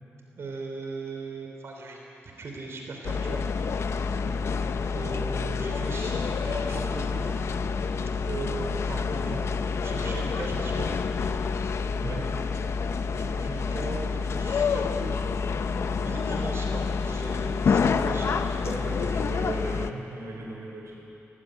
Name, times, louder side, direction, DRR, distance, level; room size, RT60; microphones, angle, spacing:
voice 1, 0.3-2.0 2.4-4.3 4.9-7.4 8.2-9.5 9.8-11.0 13.1-15.2 16.0-18.6, right 3 dB, 60° right, 1 dB, 3.2 m, -38 dB
sound 1, 3.0-19.9, left 5 dB, 65° left, 0.8 m, -28 dB
voice 2, 12.0-12.3 18.6-21.0, right 2 dB, 80° right, -1 dB, 5.0 m, -36 dB
18.5 x 18.5 x 9.0 m, 2.9 s
wide cardioid pair, 110°, 5 cm